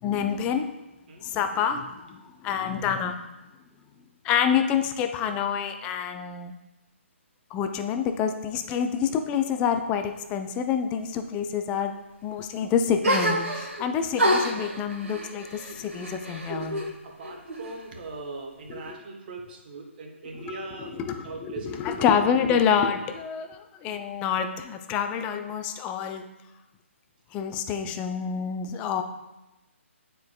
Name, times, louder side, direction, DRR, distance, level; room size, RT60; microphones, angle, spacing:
voice 1, 0.0-0.6 1.2-3.3 4.2-6.6 7.5-11.9 12.2-16.9 18.7-19.0 20.3-20.5 21.0-26.3 27.3-29.0, left 7 dB, 15° left, 7 dB, 0.4 m, -27 dB
sound 1, 13.0-13.8 14.2-16.9 17.2-18.1, equal, 80° right, 1.9 m, -28 dB
voice 2, 17.0-21.9, right 3 dB, 45° right, 2 dB, 1.2 m, -40 dB
9.3 x 4.5 x 2.3 m, 0.99 s
figure-of-eight pair, 145°, 7 cm